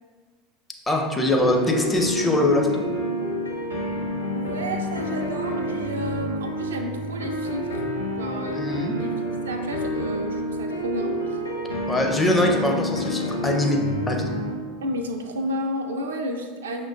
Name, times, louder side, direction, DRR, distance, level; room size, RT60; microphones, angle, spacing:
voice 1, 0.9-2.8 8.5-9.0 11.9-14.3, left 1 dB, 10° left, 2 dB, 0.5 m, -22 dB
sound 1, 1.3-14.5, equal, 85° left, 0.6 m, -29 dB
voice 2, 4.3-7.7 8.2-8.6 8.9-9.1 9.5-11.4 14.8-16.9, equal, 70° right, 4 dB, 0.3 m, -31 dB
5.9 x 2.2 x 2.6 m, 1.5 s
figure-of-eight pair, 75°, 0 cm